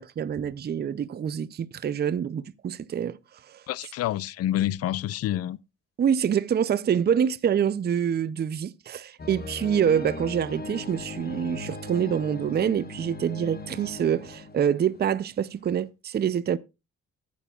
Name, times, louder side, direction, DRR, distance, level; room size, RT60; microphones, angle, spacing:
voice 1, 0.0-3.2 3.5-3.9 6.0-16.6, right 8 dB, 35° right, 0.5 m, -26 dB
voice 2, 3.7-5.6, left 13 dB, 55° left, 0.4 m, -28 dB
sound 1, 9.2-15.3 15.7-15.8, left 2 dB, 30° left, 1.2 m, -38 dB
14.5 x 9.0 x 2.4 m
cardioid pair, 90°, 30 cm